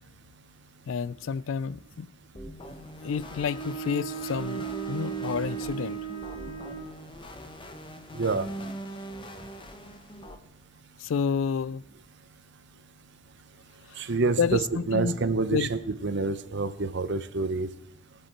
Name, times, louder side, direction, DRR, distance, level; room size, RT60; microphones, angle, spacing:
voice 1, 0.9-2.1 3.0-6.0 11.0-11.8 13.9-14.1 14.4-15.2 15.5-15.7, left 6 dB, 70° left, 0.4 m, -30 dB
sound 1, 2.3-10.4, right 1 dB, 25° left, 1.0 m, -41 dB
Bowed string instrument, 3.0-6.9, right 8 dB, 85° left, 3.6 m, -37 dB
voice 2, 8.1-8.5 14.0-14.6 14.9-17.7, right 3 dB, 60° right, 0.8 m, -27 dB
22.0 x 7.9 x 4.4 m
head